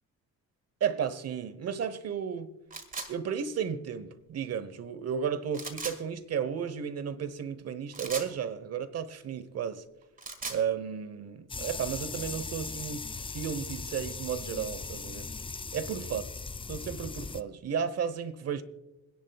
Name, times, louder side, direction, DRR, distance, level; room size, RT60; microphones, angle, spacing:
voice 1, 0.8-2.5 3.1-9.8 10.5-13.0 13.3-15.3 15.7-16.2 16.7-18.6, right 7 dB, 55° right, 1.1 m, -33 dB
sound 1, 2.7-3.1 5.5-6.0 7.9-8.3 10.0-10.6, right 3 dB, 30° right, 2.0 m, -37 dB
sound 2, 11.5-17.4, left 4 dB, 15° left, 0.4 m, -39 dB
26.0 x 10.5 x 2.3 m
cardioid pair, 90°, 30 cm